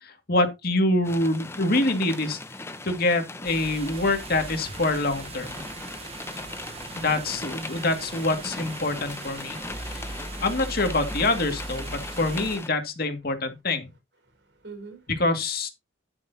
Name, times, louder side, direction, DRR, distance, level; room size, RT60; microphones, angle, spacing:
voice 1, 0.0-2.4 2.8-5.6 7.0-10.0 10.4-13.9 15.2-15.7, left 2 dB, 50° left, 2.3 m, -25 dB
sound 1, 1.0-12.7, left 2 dB, 15° left, 0.9 m, -39 dB
sound 2, 3.4-12.6, right 2 dB, 30° right, 1.2 m, -39 dB
voice 2, 14.2-15.1, right 4 dB, 60° right, 4.7 m, -46 dB
10.5 x 9.7 x 2.9 m
head